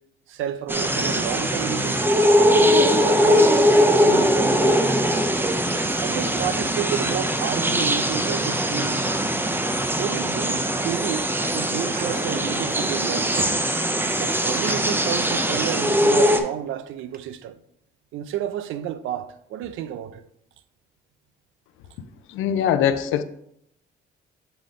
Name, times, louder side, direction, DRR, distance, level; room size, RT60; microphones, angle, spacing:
voice 1, 0.3-2.1 2.4-2.7 3.0-4.9 6.0-9.0 9.9-13.3 14.2-17.6 18.1-20.2, right 10 dB, 85° right, 0.5 m, -31 dB
sound 1, 0.7-16.4, equal, 10° right, 0.7 m, -21 dB
sound 2, 11.2-14.1 14.6-14.9 15.5-16.7 17.0-17.3, right 5 dB, 50° right, 0.7 m, -39 dB
voice 2, 22.3-23.2, left 9 dB, 85° left, 0.5 m, -22 dB
7.0 x 3.8 x 3.7 m
cardioid pair, 90°, 20 cm